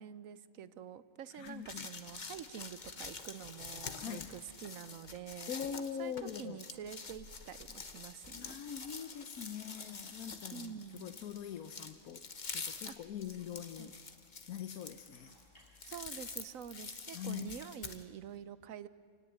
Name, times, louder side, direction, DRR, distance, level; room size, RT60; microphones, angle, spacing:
voice 1, 0.0-5.5 6.0-8.6 10.5-11.2 12.9-13.0 13.8-13.9 15.8-18.9, right 8 dB, 70° right, 15 dB, 1.2 m, -47 dB
sound 1, 1.2-18.2, equal, 60° left, 7.2 m, -70 dB
voice 2, 1.3-1.9 4.0-4.3 5.5-6.6 8.3-13.9 14.5-15.3 17.1-17.6, left 8 dB, 80° left, 10 dB, 1.3 m, -43 dB
sound 2, 1.4-18.0, left 4 dB, 35° left, 1.2 m, -47 dB
28.0 x 18.0 x 9.6 m, 2.1 s
omnidirectional pair, 1.5 m